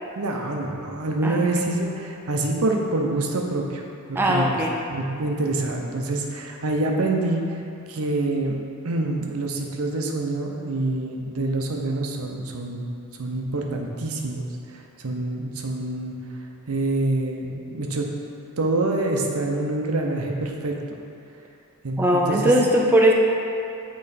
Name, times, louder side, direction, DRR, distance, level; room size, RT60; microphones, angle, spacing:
voice 1, 0.1-3.8 4.1-4.6 4.9-7.4 7.9-8.6 8.8-12.9 13.2-16.1 16.7-18.1 18.6-20.7 21.8-22.5, right 2 dB, 80° right, 1 dB, 0.7 m, -26 dB
voice 2, 4.2-4.7 22.0-23.1, equal, 10° right, -2 dB, 0.4 m, -19 dB
8.7 x 3.1 x 4.1 m, 2.7 s
head